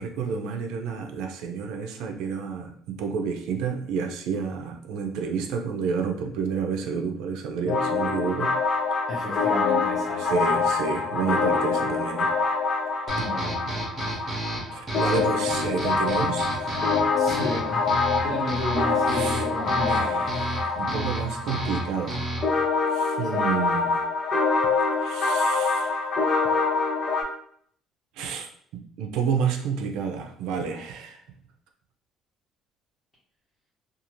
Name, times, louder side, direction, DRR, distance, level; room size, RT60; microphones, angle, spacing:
voice 1, 0.0-8.5 10.2-12.3 14.7-16.9 19.0-19.5 19.8-22.2 22.9-23.9 24.9-26.0 28.2-28.5 29.0-31.2, right 6 dB, 85° right, 4 dB, 0.5 m, -30 dB
sound 1, 7.7-27.2, left 4 dB, 40° left, 0.6 m, -25 dB
voice 2, 9.1-10.4 13.2-13.7 17.2-17.9 18.2-20.3 23.3-23.4, equal, 10° left, -11 dB, 0.9 m, -32 dB
sound 2, 13.1-22.6, right 1 dB, 25° right, 0.8 m, -33 dB
2.5 x 2.4 x 3.0 m, 0.62 s
cardioid pair, 165°, 0 cm